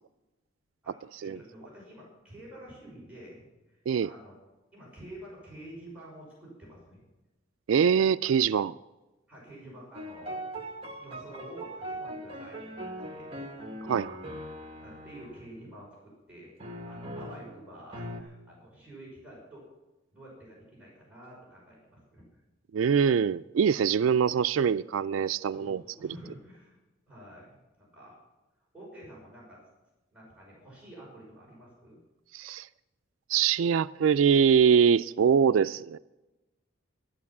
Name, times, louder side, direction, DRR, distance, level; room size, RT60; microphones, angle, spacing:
voice 1, 0.8-4.4 4.7-7.0 8.3-8.4 9.3-10.5 11.0-13.3 13.6-13.9 14.7-16.5 16.9-19.6 20.1-22.4 25.5-26.8 27.1-28.2 28.7-29.6 30.1-32.0, right 1 dB, 5° right, 5.7 m, -49 dB
voice 2, 7.7-8.7 13.9-14.2 22.7-25.8 32.3-32.7 33.3-36.0, right 7 dB, 90° right, 0.3 m, -23 dB
sound 1, 9.9-15.4 16.6-17.6 17.9-18.2, right 1 dB, 30° right, 1.5 m, -40 dB
11.5 x 11.0 x 7.3 m
head